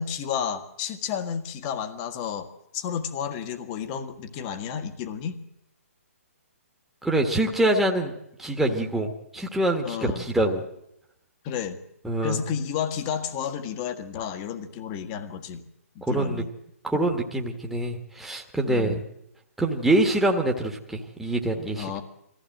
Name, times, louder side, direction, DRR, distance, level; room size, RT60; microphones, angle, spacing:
voice 1, 0.0-2.5 2.7-5.4 9.8-10.3 11.4-11.8 12.2-15.6 15.9-16.5 18.7-19.0 21.8-22.0, left 8 dB, 30° left, 9 dB, 1.7 m, -31 dB
voice 2, 7.0-8.1 8.4-10.6 12.0-12.4 16.0-16.4 16.8-19.0 19.6-21.9, right 1 dB, 5° right, 1 dB, 1.7 m, -25 dB
22.5 x 15.0 x 7.7 m, 0.81 s
figure-of-eight pair, 130°, 8 cm